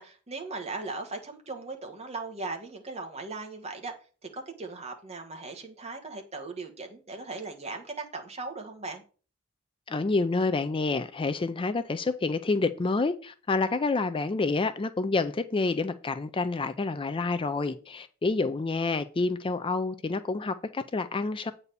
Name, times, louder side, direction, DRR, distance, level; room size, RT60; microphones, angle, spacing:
voice 1, 0.0-3.9 4.3-9.0, right 3 dB, 30° right, 1.4 m, -38 dB
voice 2, 9.9-21.5, left 3 dB, 25° left, 0.4 m, -28 dB
8.3 x 4.2 x 6.8 m
head